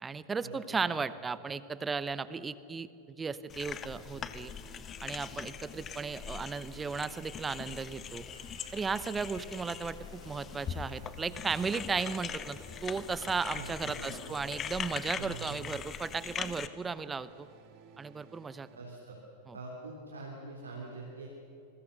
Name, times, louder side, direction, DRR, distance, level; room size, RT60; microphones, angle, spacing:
voice 1, 0.0-4.5 5.0-8.2 8.7-10.0 10.2-17.5 18.0-18.7 19.5-19.6, right 5 dB, 15° right, 16 dB, 0.9 m, -35 dB
sound 1, 3.5-16.7, left 8 dB, 25° left, 1.1 m, -42 dB
sound 2, 3.6-19.0, right 7 dB, 40° right, 2.0 m, -57 dB
sound 3, 8.2-16.3, equal, 90° left, 4.1 m, -61 dB
voice 2, 13.5-14.4 15.2-15.6 18.7-19.2 19.5-21.3, right 3 dB, 75° right, -2 dB, 3.3 m, -44 dB
27.5 x 22.0 x 6.6 m, 3.0 s
figure-of-eight pair, 90°, 0 cm